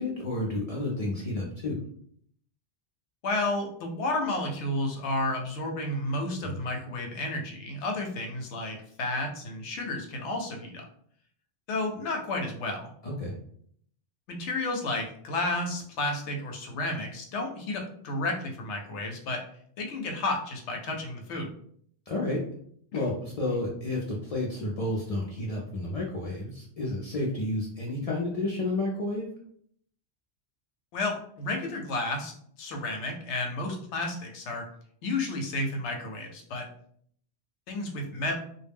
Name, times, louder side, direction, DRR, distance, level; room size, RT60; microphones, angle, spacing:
voice 1, 0.0-1.7 6.4-6.5 13.0-13.3 22.1-22.4 22.9-29.3, left 2 dB, 55° left, -3 dB, 0.4 m, -31 dB
voice 2, 3.2-10.8 11.7-12.9 14.3-19.4 19.8-21.5 22.9-23.0 30.9-32.3 32.6-34.6 35.0-36.7 37.7-38.3, left 2 dB, 90° left, 2 dB, 0.9 m, -31 dB
2.2 x 2.1 x 3.3 m, 0.63 s
omnidirectional pair, 1.1 m